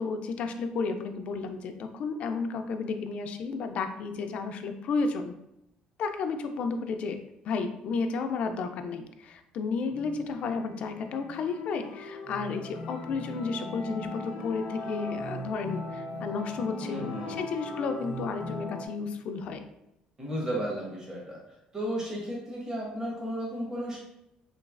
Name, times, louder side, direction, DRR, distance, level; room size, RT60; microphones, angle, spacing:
voice 1, 0.0-5.3 6.0-19.6, left 4 dB, 50° left, 7 dB, 0.3 m, -32 dB
sound 1, 9.9-18.9, left 2 dB, 90° left, 0.7 m, -39 dB
voice 2, 16.8-17.4 20.2-21.4 21.7-24.0, equal, 20° right, -4 dB, 0.9 m, -34 dB
3.1 x 3.0 x 2.4 m, 0.85 s
cardioid pair, 150°, 3 cm